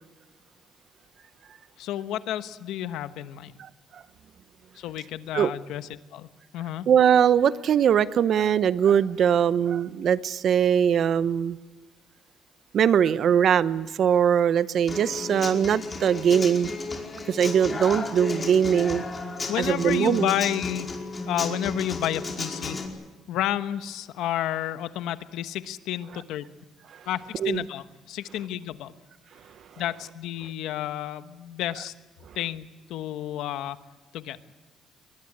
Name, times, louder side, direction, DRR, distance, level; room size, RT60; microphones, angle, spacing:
voice 1, 1.8-3.5 4.7-6.9 19.5-20.9 21.3-22.8 23.3-26.4 27.1-28.9 29.8-31.9 32.3-33.8 34.1-34.4, left 12 dB, 85° left, 1.1 m, -31 dB
voice 2, 3.6-4.0 5.3-5.5 6.9-11.6 12.7-16.7 17.3-19.0 19.6-20.3 27.4-27.6, right 8 dB, 60° right, 0.8 m, -21 dB
Human voice / Acoustic guitar, 14.9-22.9, left 3 dB, 30° left, 4.9 m, -33 dB
23.0 x 20.5 x 8.6 m
cardioid pair, 85°, 0 cm